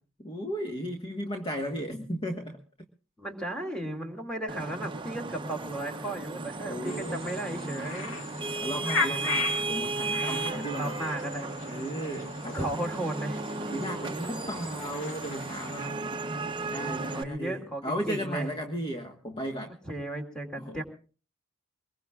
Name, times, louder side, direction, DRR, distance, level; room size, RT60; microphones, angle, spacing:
voice 1, 0.2-2.6 6.7-7.2 8.6-11.0 11.7-12.7 13.6-16.1 16.7-19.7 20.6-20.8, equal, 30° left, 3 dB, 1.4 m, -35 dB
voice 2, 3.2-8.2 10.2-11.5 12.5-13.4 17.1-18.5 19.8-20.8, right 1 dB, 5° left, 2 dB, 2.7 m, -35 dB
Vehicle horn car horn honking / Traffic noise roadway noise, 4.5-17.2, right 3 dB, 25° right, 0.7 m, -35 dB
sound 1, 6.8-15.9, left 4 dB, 70° left, 2.2 m, -37 dB
23.5 x 21.5 x 2.3 m, 0.37 s
head